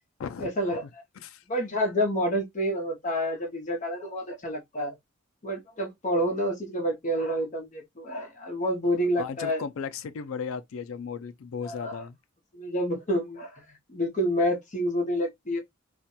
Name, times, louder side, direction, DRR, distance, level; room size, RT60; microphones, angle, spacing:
voice 1, 0.4-0.8 1.5-4.9 5.4-9.6 11.6-12.0 12.5-15.6, equal, 40° left, 0.7 m, -28 dB
voice 2, 9.2-12.2, left 6 dB, 90° left, 0.4 m, -35 dB
2.4 x 2.2 x 2.7 m
head